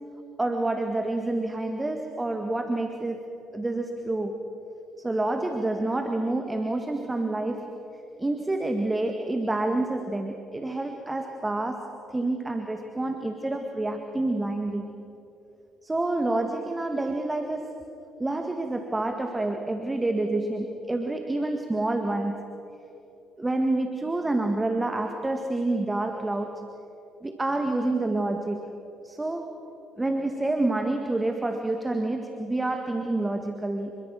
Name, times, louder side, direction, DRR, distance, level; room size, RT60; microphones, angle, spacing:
voice 1, 0.4-3.3 3.5-4.4 5.0-7.7 8.2-14.9 15.8-17.9 18.2-22.4 23.4-26.7 27.2-28.8 29.0-29.6 30.0-34.0, right 2 dB, 15° right, 5 dB, 2.0 m, -28 dB
27.0 x 23.0 x 6.4 m, 2.9 s
figure-of-eight pair, 50°, 0 cm